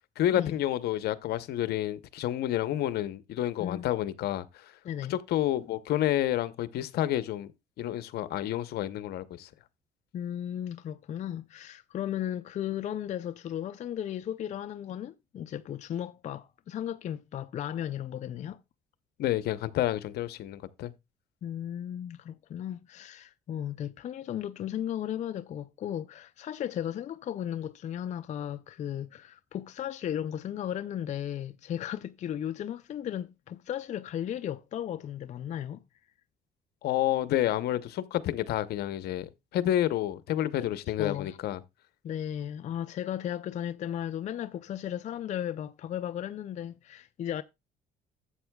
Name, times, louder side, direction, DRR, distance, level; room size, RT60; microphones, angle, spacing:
voice 1, 0.2-4.7 5.1-7.5 7.8-9.5 19.2-20.9 36.8-41.6, left 12 dB, 70° left, 0.8 m, -29 dB
voice 2, 10.1-18.6 21.4-35.8 41.0-41.4 42.0-47.4, left 10 dB, 45° left, 0.5 m, -35 dB
12.5 x 7.9 x 2.2 m
cardioid pair, 110°, 17 cm